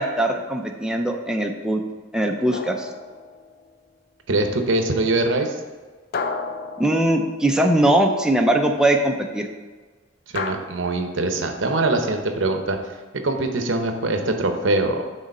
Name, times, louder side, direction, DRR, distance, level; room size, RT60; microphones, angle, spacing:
voice 1, 0.0-1.8 2.1-2.9 6.8-9.5, right 1 dB, 5° right, 2 dB, 0.5 m, -21 dB
sound 1, 2.5-3.7 6.1-7.8 10.3-10.5, left 4 dB, 50° left, 0.5 m, -32 dB
voice 2, 4.3-5.6 10.3-12.8 13.2-15.0, right 2 dB, 65° right, 5 dB, 0.8 m, -22 dB
6.4 x 4.1 x 5.3 m, 1.4 s
head